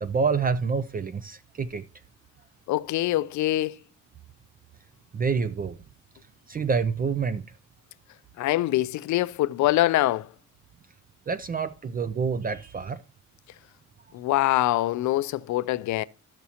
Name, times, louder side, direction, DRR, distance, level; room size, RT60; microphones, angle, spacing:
voice 1, 0.0-1.8 5.1-5.8 6.5-7.4 11.3-13.0, right 5 dB, 30° right, 0.4 m, -27 dB
voice 2, 2.7-3.8 8.4-10.3 14.1-16.0, left 15 dB, 70° left, 0.5 m, -24 dB
14.0 x 5.9 x 2.8 m
cardioid pair, 90°, 30 cm